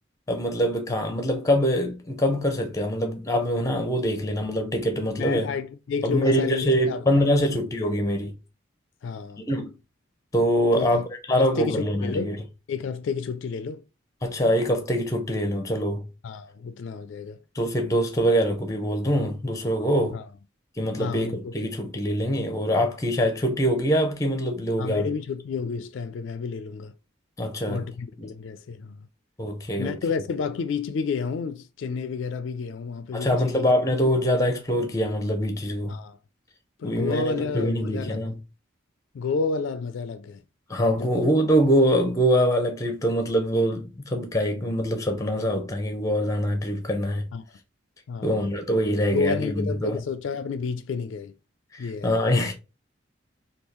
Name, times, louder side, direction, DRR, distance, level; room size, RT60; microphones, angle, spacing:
voice 1, 0.3-5.5 6.0-8.3 9.5-9.7 10.3-12.4 14.2-16.0 17.5-20.2 20.8-25.1 27.4-27.9 28.2-28.3 29.4-30.0 33.1-35.9 36.8-38.3 40.7-47.3 48.2-50.0 51.7-52.5, equal, 15° left, 0.6 m, -24 dB
voice 2, 5.2-7.6 9.0-9.4 10.7-11.0 11.4-12.4 12.7-13.8 16.2-17.4 20.1-20.3 21.0-21.5 24.8-26.9 27.7-29.1 29.8-33.7 35.9-36.2 36.8-38.2 39.1-40.4 41.0-41.3 47.3-47.4 48.1-48.3 49.1-51.3 51.8-52.2, left 5 dB, 70° left, 0.3 m, -30 dB
3.6 x 2.3 x 2.9 m
head